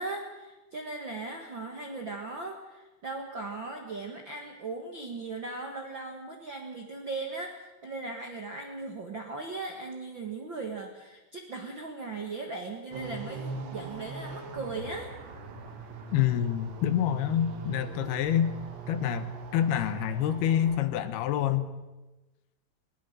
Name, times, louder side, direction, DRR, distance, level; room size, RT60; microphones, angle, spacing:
voice 1, 0.0-15.1, right 3 dB, 65° right, 2 dB, 1.1 m, -38 dB
sound 1, 12.9-20.8, right 4 dB, 85° right, 4.5 m, -41 dB
voice 2, 16.1-18.5 18.9-21.7, left 10 dB, 75° left, 12 dB, 2.8 m, -27 dB
20.5 x 19.0 x 6.6 m, 1.1 s
omnidirectional pair, 4.8 m